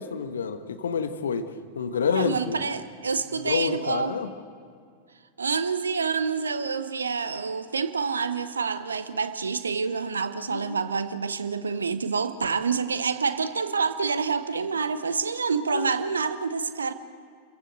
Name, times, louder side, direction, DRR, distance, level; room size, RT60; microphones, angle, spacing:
voice 1, 0.0-1.5 1.7-2.6 3.4-4.3 10.5-10.8 15.7-15.9, left 6 dB, 65° left, 9 dB, 1.3 m, -28 dB
voice 2, 2.1-4.2 5.4-16.9, right 5 dB, 75° right, 12 dB, 1.0 m, -27 dB
27.5 x 15.5 x 7.9 m, 2.1 s
figure-of-eight pair, 90°, 0 cm